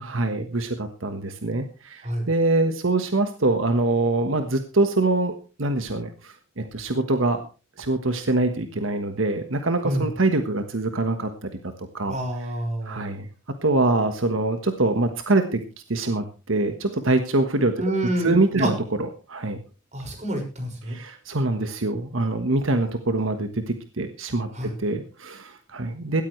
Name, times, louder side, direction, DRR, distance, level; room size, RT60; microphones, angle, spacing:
voice 1, 0.0-7.4 7.8-12.2 12.8-13.3 13.6-15.6 15.9-17.8 18.2-19.6 20.9-26.2, right 2 dB, 80° right, 7 dB, 1.4 m, -24 dB
voice 2, 12.1-13.1 17.8-18.7 19.9-21.0 24.5-24.7, right 1 dB, 35° right, 3 dB, 5.8 m, -28 dB
17.0 x 14.0 x 3.2 m, 0.34 s
head